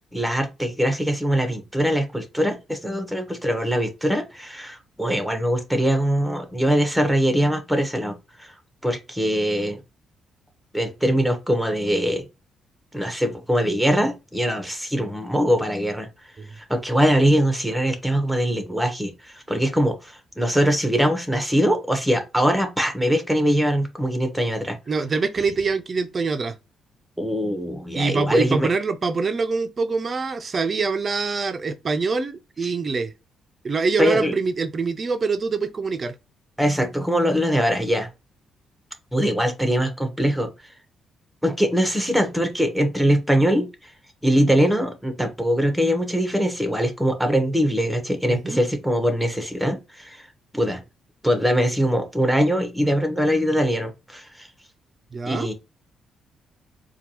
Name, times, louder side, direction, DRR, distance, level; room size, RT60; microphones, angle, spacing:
voice 1, 0.1-8.5 8.8-9.8 10.7-12.2 12.9-16.1 16.5-24.8 27.2-28.7 34.0-34.3 36.6-38.1 39.1-40.5 41.4-43.9 44.2-50.3 50.5-50.8 51.2-54.5 55.2-55.5, equal, ahead, 1.0 m, -22 dB
voice 2, 24.9-26.5 27.9-33.1 33.6-36.1 48.3-48.6 55.1-55.5, right 4 dB, 40° right, 0.5 m, -24 dB
4.4 x 2.3 x 2.9 m
cardioid pair, 90°, 0 cm